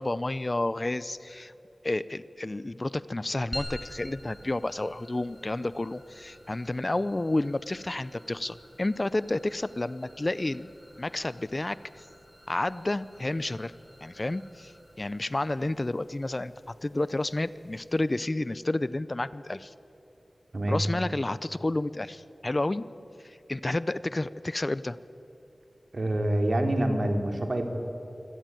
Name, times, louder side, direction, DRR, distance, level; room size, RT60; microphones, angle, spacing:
voice 1, 0.0-1.5 1.8-10.7 11.0-12.1 12.5-13.7 14.0-19.7 20.7-22.8 23.2-25.0, left 2 dB, 35° left, 17 dB, 0.5 m, -30 dB
sound 1, 3.5-18.2, equal, 5° left, 5.2 m, -48 dB
voice 2, 25.9-27.7, right 1 dB, 55° right, 4 dB, 3.0 m, -26 dB
25.0 x 17.0 x 9.1 m, 3.0 s
wide cardioid pair, 75°, 0 cm